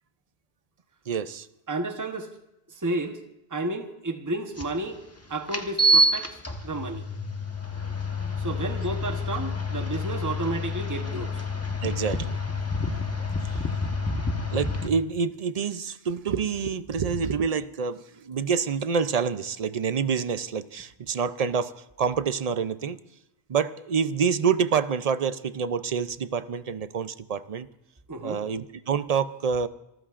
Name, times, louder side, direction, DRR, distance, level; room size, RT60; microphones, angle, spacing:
voice 1, 1.1-1.5 11.8-12.3 13.4-13.5 14.5-21.7 22.0-23.0 23.5-27.7 28.2-29.7, right 6 dB, 45° right, 13 dB, 0.6 m, -27 dB
voice 2, 1.7-2.3 2.7-3.2 3.5-5.0 5.3-6.4 6.6-7.1 8.4-11.4 28.1-28.4, right 2 dB, 20° right, 5 dB, 1.1 m, -31 dB
sound 1, 4.6-4.7 5.5-14.9, equal, 15° left, 1.2 m, -27 dB
28.0 x 14.0 x 2.5 m, 0.88 s
omnidirectional pair, 1.1 m